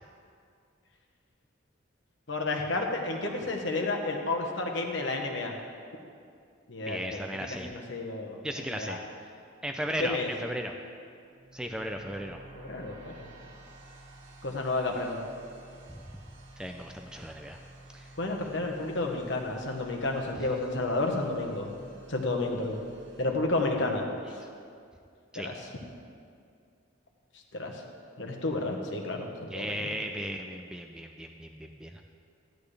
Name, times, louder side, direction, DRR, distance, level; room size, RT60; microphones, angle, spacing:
voice 1, 2.3-5.6 6.7-7.2 7.5-9.0 10.0-10.3 12.5-13.3 14.4-15.3 18.2-21.8 22.1-22.8 23.2-24.1 25.3-25.7 27.5-27.8 28.2-29.8, left 2 dB, 60° left, 2 dB, 1.2 m, -31 dB
voice 2, 6.9-7.7 8.4-9.0 9.6-10.7 11.5-12.4 16.6-17.6 17.9-18.0 25.3-25.5 29.5-31.9, equal, 5° right, 3 dB, 0.4 m, -36 dB
sound 1, 11.3-24.4, right 1 dB, 90° right, 2.1 m, -51 dB
13.5 x 10.5 x 3.3 m, 2.3 s
head